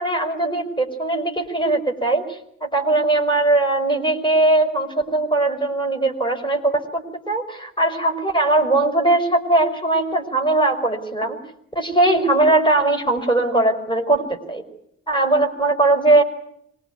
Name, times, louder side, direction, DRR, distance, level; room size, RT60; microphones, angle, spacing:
voice 1, 0.0-11.4 11.8-14.6 15.1-16.2, right 2 dB, 10° left, 5 dB, 5.3 m, -20 dB
24.5 x 21.0 x 9.5 m, 0.74 s
figure-of-eight pair, 40°, 39 cm